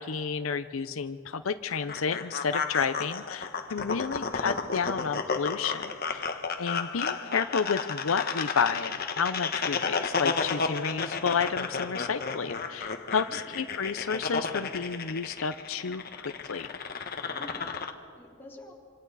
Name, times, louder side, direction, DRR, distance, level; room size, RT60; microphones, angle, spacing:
voice 1, 0.0-6.3 6.6-16.7, left 6 dB, 75° left, 10 dB, 0.6 m, -31 dB
sound 1, 1.7-17.9, left 5 dB, 45° left, 1.1 m, -33 dB
voice 2, 13.2-13.6 17.3-18.7, left 1 dB, 10° left, -5 dB, 3.4 m, -49 dB
26.0 x 25.5 x 4.1 m, 2.2 s
head